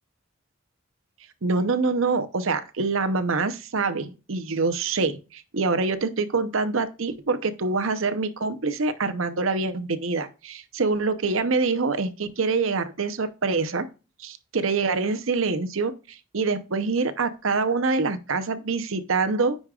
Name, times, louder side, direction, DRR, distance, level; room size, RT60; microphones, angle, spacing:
voice 1, 1.4-13.9 14.2-19.6, right 4 dB, 75° right, 0.8 m, -25 dB
9.7 x 5.2 x 2.4 m
head